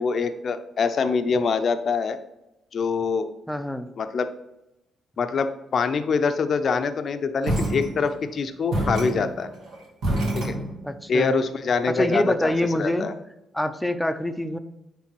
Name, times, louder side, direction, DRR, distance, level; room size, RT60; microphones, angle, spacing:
voice 1, 0.0-2.2 2.7-3.3 4.0-4.3 5.2-9.5 10.3-10.6 11.1-13.1, left 5 dB, 50° left, 9 dB, 0.6 m, -24 dB
voice 2, 3.5-3.9 10.8-11.4 11.9-13.1 13.5-14.6, left 1 dB, 5° left, 9 dB, 0.6 m, -25 dB
sound 1, 7.4-8.3 8.7-11.1, right 1 dB, 75° right, 2.1 m, -27 dB
9.8 x 3.4 x 3.1 m, 0.91 s
cardioid pair, 90°, 0 cm